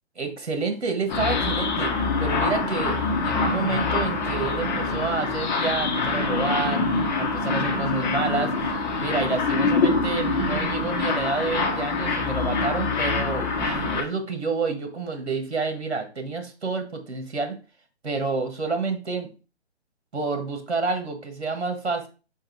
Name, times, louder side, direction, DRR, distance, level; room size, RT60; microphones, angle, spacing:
voice 1, 0.1-1.9 2.2-6.8 7.2-17.6 18.0-19.3 20.1-22.1, right 4 dB, 65° right, 5 dB, 1.7 m, -29 dB
sound 1, 1.1-14.0, left 3 dB, 40° left, 1.6 m, -25 dB
6.4 x 4.6 x 3.4 m, 0.34 s
figure-of-eight pair, 135°, 34 cm